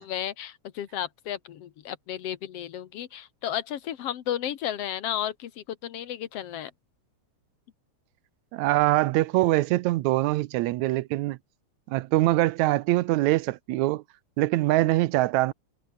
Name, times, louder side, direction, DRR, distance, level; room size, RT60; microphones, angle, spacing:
voice 1, 0.0-6.7, left 10 dB, 60° left, 2.1 m, -33 dB
voice 2, 8.5-11.4 11.9-14.0 14.4-15.5, right 17 dB, 75° right, 1.9 m, -23 dB
omnidirectional pair, 3.4 m